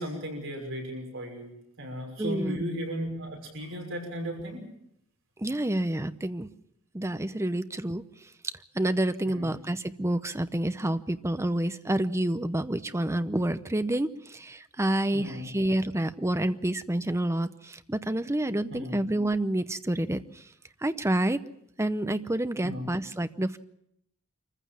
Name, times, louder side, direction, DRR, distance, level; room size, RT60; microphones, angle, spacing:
voice 1, 0.0-1.5 1.8-4.6 9.2-9.6 15.1-15.5 18.7-19.0 22.6-22.9, equal, 60° right, 1 dB, 6.0 m, -35 dB
voice 2, 2.2-2.6 5.4-6.5 6.9-8.0 8.4-20.4 20.8-21.4 21.8-23.6, right 1 dB, 15° right, 11 dB, 0.7 m, -28 dB
25.5 x 15.0 x 7.3 m, 0.76 s
head